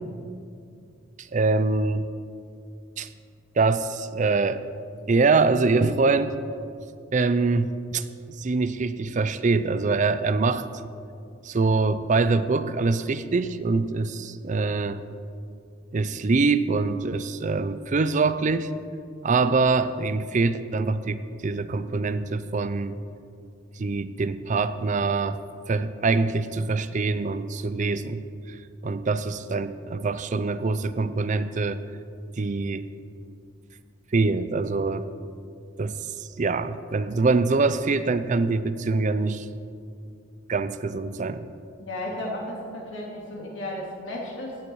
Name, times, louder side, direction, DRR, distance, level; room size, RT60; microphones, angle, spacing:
voice 1, 1.2-2.1 3.0-3.1 3.6-4.6 5.1-6.4 7.1-8.0 8.4-10.7 11.4-15.0 15.9-18.7 19.2-23.0 23.8-25.4 25.7-28.6 28.8-31.8 32.4-32.9 34.1-35.0 35.8-39.5 40.5-41.5, right 3 dB, 40° right, 12 dB, 0.5 m, -24 dB
voice 2, 41.8-44.6, left 1 dB, 70° left, -2 dB, 3.0 m, -34 dB
16.5 x 9.6 x 4.8 m, 2.4 s
head